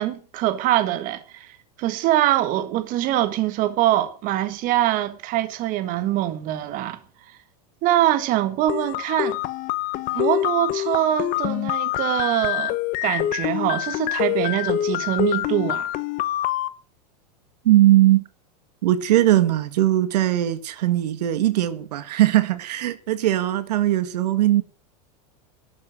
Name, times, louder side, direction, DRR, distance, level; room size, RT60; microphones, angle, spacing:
voice 1, 0.0-7.0 7.8-9.4 10.1-12.8 13.0-15.9, right 13 dB, 40° right, 1.6 m, -23 dB
sound 1, 8.7-16.7, left 14 dB, 40° left, 0.9 m, -25 dB
voice 2, 17.6-18.2 18.8-24.6, right 14 dB, 80° right, 1.7 m, -19 dB
12.0 x 7.7 x 9.2 m
supercardioid pair, 135°, 20 cm